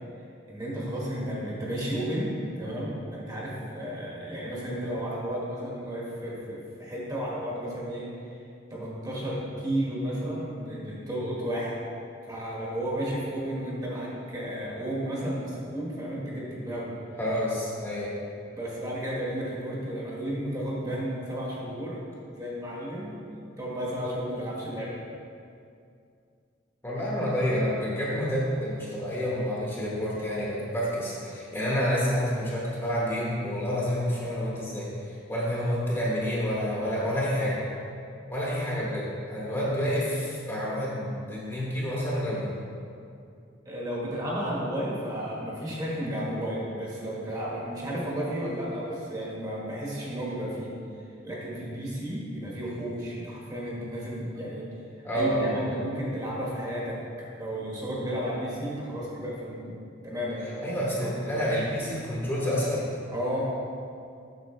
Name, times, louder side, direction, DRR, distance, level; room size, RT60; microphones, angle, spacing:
voice 1, 0.5-8.1 8.7-11.7 12.3-17.0 18.5-22.0 22.3-24.9 43.6-50.7 51.2-54.6 55.1-57.0 57.4-59.8 60.0-60.7 61.0-61.2 63.1-63.5, equal, 20° right, -5 dB, 1.3 m, -33 dB
voice 2, 17.2-18.1 26.8-37.6 38.3-42.5 55.0-55.8 60.6-62.9, equal, 15° left, -6 dB, 1.1 m, -29 dB
7.8 x 6.3 x 3.1 m, 2.5 s
head